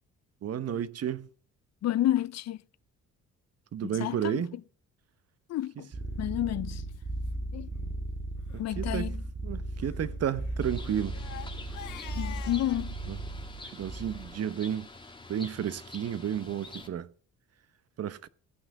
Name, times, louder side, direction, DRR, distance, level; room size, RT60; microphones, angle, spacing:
voice 1, 0.4-1.3 3.7-4.5 8.5-9.2 9.4-11.2 13.1-13.2 13.7-14.9 15.3-17.1 18.0-18.3, right 9 dB, 55° right, 1.0 m, -32 dB
voice 2, 1.8-2.6 3.8-4.4 5.5-5.9 6.2-6.8 7.5-7.7 8.6-9.2 12.2-13.0, left 13 dB, 60° left, 0.5 m, -30 dB
sound 1, 5.9-14.4, right 1 dB, 40° right, 2.0 m, -36 dB
Crying sobbing, 6.0-6.2 6.9-7.0 7.3-7.4 7.7-7.9 8.4-8.6 9.8-12.9, left 11 dB, 80° left, 1.6 m, -47 dB
Bird, 10.6-16.9, left 2 dB, 15° left, 2.3 m, -47 dB
16.5 x 5.9 x 6.5 m
cardioid pair, 90°, 30 cm